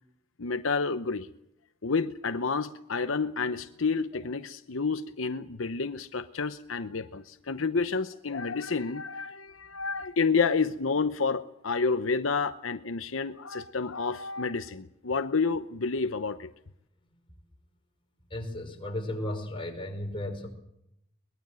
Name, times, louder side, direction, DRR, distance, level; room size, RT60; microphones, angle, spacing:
voice 1, 0.4-1.3 1.8-16.5, left 4 dB, 80° left, 10 dB, 0.9 m, -29 dB
voice 2, 18.3-20.5, left 1 dB, 25° left, 3 dB, 5.1 m, -34 dB
22.5 x 21.0 x 7.6 m, 0.80 s
head